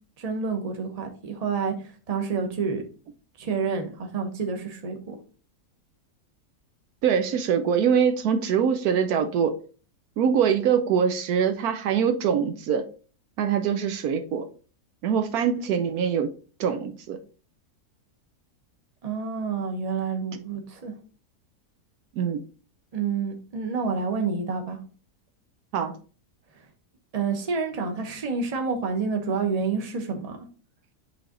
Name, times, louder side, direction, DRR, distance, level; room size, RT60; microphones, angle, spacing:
voice 1, 0.2-2.8 3.4-5.1 19.0-20.9 22.9-24.8 26.6-26.7 27.1-30.4, right 5 dB, 30° right, 0.9 m, -28 dB
voice 2, 7.0-9.5 10.2-12.8 13.4-14.4 15.0-16.3 16.6-17.2 22.2-22.4 25.7-25.9, right 7 dB, 75° right, 1.1 m, -23 dB
8.2 x 3.4 x 3.8 m
omnidirectional pair, 1.7 m